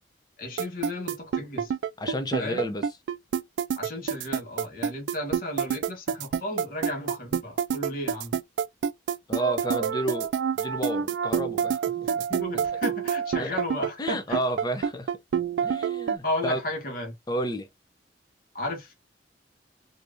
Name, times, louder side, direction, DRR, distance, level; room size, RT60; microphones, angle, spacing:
voice 1, 0.4-1.7 2.4-2.7 3.8-8.4 11.9-14.4 16.2-17.1 18.5-18.9, left 1 dB, 50° left, 1.4 m, -34 dB
sound 1, 0.6-16.2, right 7 dB, 85° right, 0.3 m, -27 dB
voice 2, 2.0-2.8 9.3-10.3 10.5-11.8 13.4-13.5 14.0-15.1 15.6-16.6 17.3-17.7, right 1 dB, 20° left, 0.6 m, -30 dB
3.4 x 2.8 x 2.5 m
head